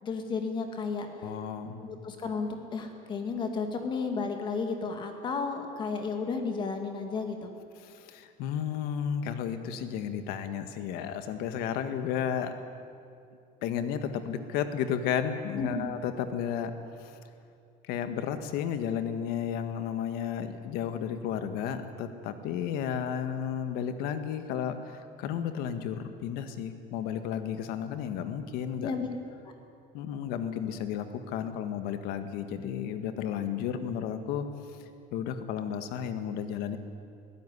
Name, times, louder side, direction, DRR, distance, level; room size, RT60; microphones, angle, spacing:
voice 1, 0.0-1.1 1.8-7.5 15.6-15.9 28.8-29.1, left 4 dB, 30° left, 5 dB, 2.2 m, -33 dB
voice 2, 1.2-1.8 7.8-12.5 13.6-16.7 17.0-17.2 17.8-28.9 29.9-34.5 34.8-36.8, left 8 dB, 75° left, 9 dB, 1.8 m, -33 dB
22.0 x 16.0 x 9.9 m, 2.5 s
cardioid pair, 175°, 16 cm